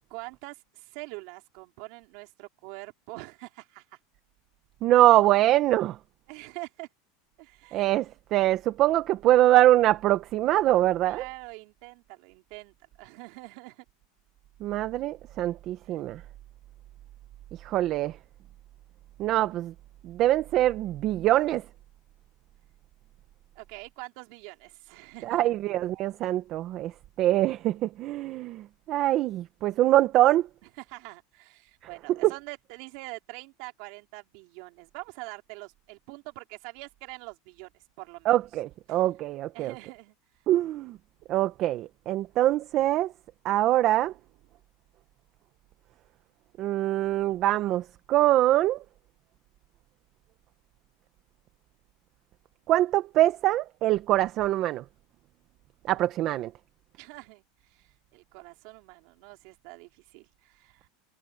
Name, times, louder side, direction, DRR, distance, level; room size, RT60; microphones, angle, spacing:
voice 1, 0.1-4.0 6.3-6.9 7.4-7.9 11.0-13.8 23.5-25.5 30.8-37.7 38.0-38.3 38.9-39.0 39.5-40.1 57.0-60.9, right 25 dB, 60° right, 3.4 m, -44 dB
voice 2, 4.8-6.0 7.7-11.2 14.6-16.2 17.6-18.2 19.2-19.7 20.0-21.6 25.2-26.9 27.2-30.5 32.2-32.3 38.2-39.7 40.5-41.0 41.3-43.1 43.4-44.1 46.6-48.8 52.7-54.8 55.8-56.5, right 14 dB, 40° right, 1.1 m, -24 dB
supercardioid pair, 140°, 0 cm